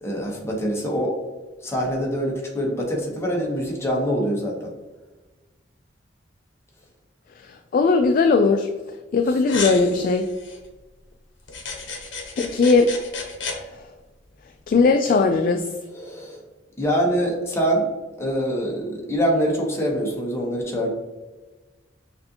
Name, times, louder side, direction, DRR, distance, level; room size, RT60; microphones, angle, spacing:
voice 1, 0.0-1.2 1.6-4.7 9.3-9.4 15.9-16.4 16.8-17.8 18.2-20.9, equal, 15° left, -2 dB, 0.9 m, -24 dB
voice 2, 7.7-8.7 9.1-10.3 12.4-12.9 14.7-15.6, left 4 dB, 45° left, 5 dB, 0.3 m, -18 dB
sound 1, 9.5-10.6 11.5-13.6, left 4 dB, 70° left, 0.9 m, -33 dB
6.2 x 2.6 x 2.8 m, 1.2 s
head